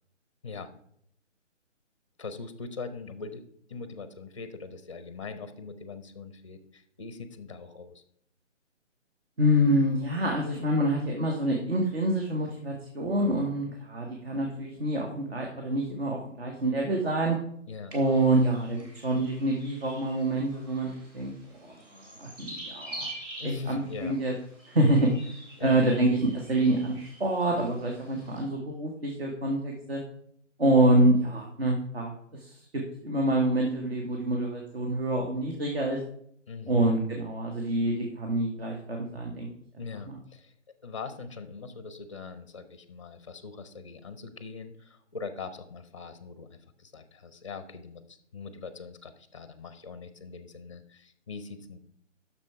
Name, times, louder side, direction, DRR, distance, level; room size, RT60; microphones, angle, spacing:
voice 1, 2.2-3.4 3.7-8.0 17.7-17.9 23.4-24.1 25.6-26.0 36.5-37.0 39.8-40.5 40.8-48.0 48.3-51.8, left 4 dB, 25° left, 11 dB, 0.5 m, -41 dB
voice 2, 9.4-17.4 17.9-23.1 23.4-24.3 24.7-25.1 25.6-30.0 30.6-36.0 36.7-39.5, right 1 dB, 55° right, 1 dB, 1.5 m, -26 dB
sound 1, 17.9-28.4, right 1 dB, 20° right, 1.7 m, -46 dB
7.4 x 6.2 x 4.5 m, 0.68 s
figure-of-eight pair, 145°, 37 cm